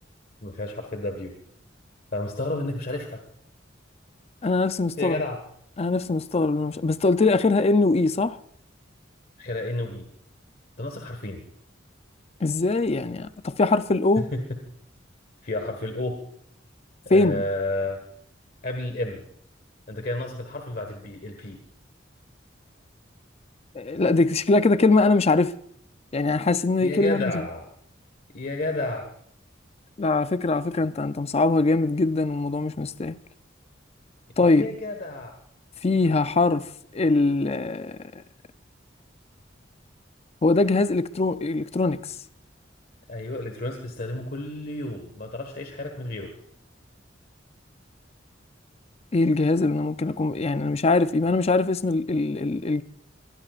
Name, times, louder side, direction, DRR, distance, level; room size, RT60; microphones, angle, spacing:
voice 1, 0.4-1.4 2.1-3.2 5.0-5.4 9.4-10.1 10.8-11.4 14.2-14.6 15.4-16.2 17.0-18.0 18.6-19.2 19.9-21.6 26.8-27.7 28.3-29.1 34.4-35.4 43.1-46.3, left 2 dB, 50° left, 1.6 m, -31 dB
voice 2, 4.4-5.2 5.8-8.4 12.4-14.3 17.1-17.4 23.7-25.5 26.1-27.4 30.0-33.2 34.4-34.7 35.8-36.7 36.9-38.0 40.4-42.2 49.1-52.8, left 3 dB, 35° left, 0.5 m, -22 dB
23.5 x 20.0 x 2.5 m
head